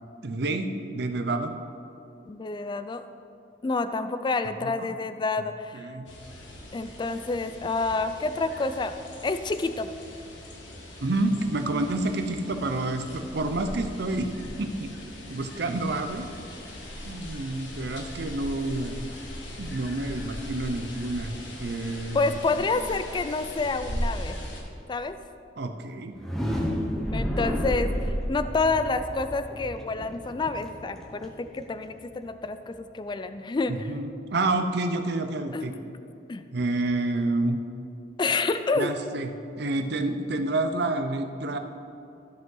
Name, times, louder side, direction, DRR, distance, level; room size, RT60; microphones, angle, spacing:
voice 1, 0.2-1.5 4.5-4.9 5.7-6.1 11.0-14.3 14.6-14.9 15.3-16.3 17.0-19.0 19.6-21.3 21.6-22.4 25.6-26.2 33.7-35.7 36.5-37.6 38.8-39.3 39.6-41.6, right 2 dB, 60° right, 7 dB, 0.6 m, -29 dB
voice 2, 2.3-3.0 3.6-5.9 6.7-8.9 9.2-9.9 22.1-24.4 24.9-25.2 27.1-33.9 35.5-35.7 36.3-36.4 38.2-38.9, left 3 dB, 25° left, 10 dB, 0.3 m, -28 dB
sound 1, 6.1-24.6, equal, 90° left, 1.3 m, -39 dB
sound 2, 26.1-32.0, equal, ahead, 0.9 m, -31 dB
14.0 x 5.3 x 3.9 m, 2.5 s
head